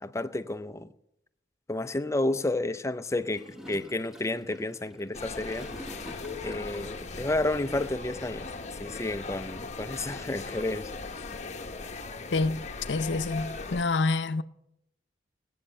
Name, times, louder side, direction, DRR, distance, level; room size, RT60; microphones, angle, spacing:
voice 1, 0.0-0.9 1.7-5.7 6.4-8.5 8.8-10.9, left 2 dB, 15° left, 0.5 m, -31 dB
Gurgling / Toilet flush, 3.3-7.1, left 1 dB, 5° right, 1.1 m, -47 dB
sound 1, 5.1-13.8, left 3 dB, 40° left, 0.9 m, -39 dB
voice 2, 12.3-14.4, left 3 dB, 80° left, 0.6 m, -28 dB
19.5 x 8.7 x 6.6 m
head